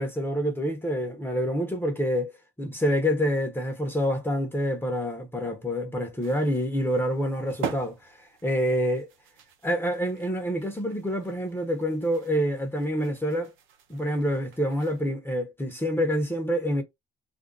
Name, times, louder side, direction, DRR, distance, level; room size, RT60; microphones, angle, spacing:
voice 1, 0.0-2.3 2.6-9.1 9.6-13.5 13.9-16.8, equal, 10° left, 0.9 m, -27 dB
sound 1, 6.2-15.1, right 7 dB, 80° right, 0.7 m, -43 dB
2.5 x 2.4 x 3.8 m
cardioid pair, 90°, 20 cm